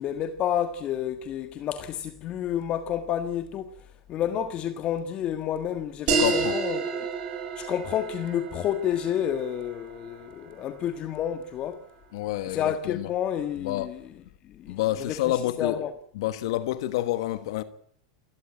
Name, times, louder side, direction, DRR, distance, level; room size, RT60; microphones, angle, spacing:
voice 1, 0.0-3.7 4.1-7.1 7.6-11.8 12.5-14.1 14.4-15.9, left 10 dB, 40° left, 1.6 m, -30 dB
sound 1, 6.1-11.2, right 5 dB, 45° right, 6.8 m, -30 dB
voice 2, 6.2-6.5 12.1-13.1 13.6-13.9 14.7-15.8 16.1-17.6, left 14 dB, 70° left, 1.3 m, -28 dB
28.5 x 13.0 x 8.9 m
hypercardioid pair, 110°, 3 cm